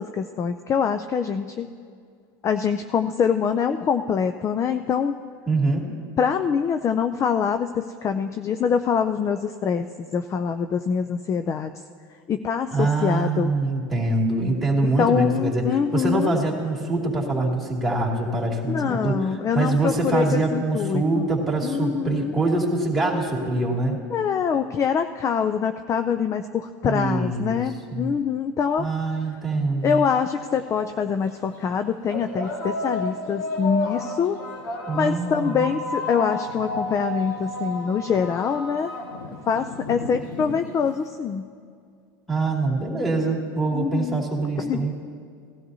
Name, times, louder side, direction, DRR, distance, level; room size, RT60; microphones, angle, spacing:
voice 1, 0.0-1.7 2.4-5.2 6.2-11.7 12.3-13.5 14.8-16.4 18.7-21.3 21.6-22.3 24.1-28.9 29.8-34.4 34.9-38.9 39.5-41.5 43.7-44.3 44.6-44.9, left 7 dB, 25° left, 9 dB, 0.4 m, -24 dB
voice 2, 5.5-5.9 12.7-15.7 15.9-19.1 19.5-24.0 26.8-27.6 27.9-28.1 28.8-30.0 34.9-35.7 42.3-44.9, right 2 dB, ahead, -1 dB, 2.6 m, -24 dB
sound 1, 30.0-30.1 31.0-31.2 32.1-41.0, left 1 dB, 80° left, 1.9 m, -32 dB
18.0 x 12.5 x 2.8 m, 2.2 s
supercardioid pair, 110°, 11 cm